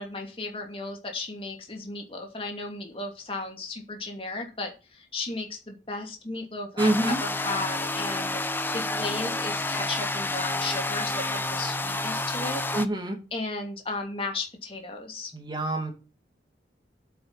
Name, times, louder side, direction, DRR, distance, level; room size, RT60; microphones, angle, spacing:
voice 1, 0.0-8.4 8.7-12.6 13.3-15.3, left 3 dB, 30° left, 2 dB, 2.5 m, -35 dB
sound 1, 6.8-12.9, left 2 dB, 10° left, 0.6 m, -29 dB
voice 2, 6.8-7.2 12.7-13.2 15.3-15.9, right 1 dB, 25° right, 3 dB, 2.4 m, -26 dB
8.6 x 6.9 x 6.7 m, 0.31 s
head